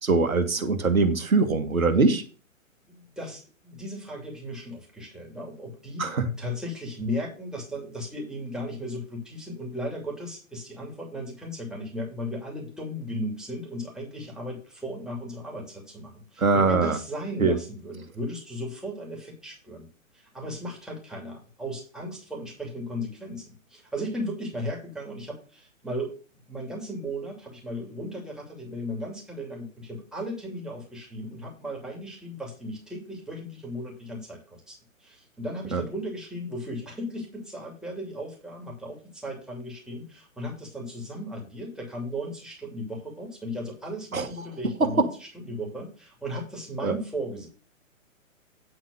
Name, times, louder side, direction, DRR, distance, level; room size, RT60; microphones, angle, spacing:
voice 1, 0.0-2.2 6.0-6.3 16.4-17.0 17.4-17.6 35.7-35.8 44.1-44.3 44.8-44.9 46.8-46.9, right 4 dB, 85° right, 7 dB, 1.7 m, -22 dB
voice 2, 2.9-19.9 20.1-26.1 26.5-47.5, equal, ahead, -3 dB, 2.7 m, -36 dB
9.7 x 4.0 x 7.0 m, 0.35 s
figure-of-eight pair, 130°, 41 cm